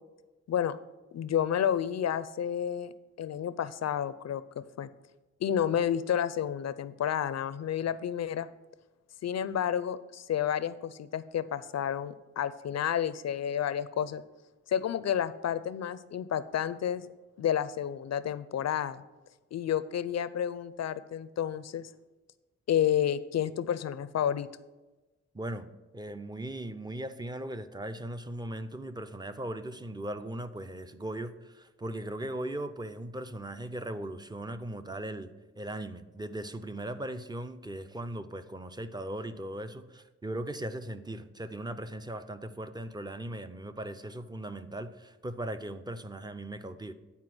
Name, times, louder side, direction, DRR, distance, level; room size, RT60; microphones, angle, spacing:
voice 1, 1.1-2.9 3.2-4.9 5.4-8.5 9.2-14.2 14.7-17.1 17.4-19.0 19.5-21.9 22.7-24.5, left 9 dB, 60° left, 15 dB, 0.5 m, -30 dB
voice 2, 25.3-25.7 25.9-46.9, right 1 dB, 15° right, 10 dB, 0.5 m, -38 dB
9.6 x 4.6 x 6.0 m, 1.1 s
cardioid pair, 90°, 29 cm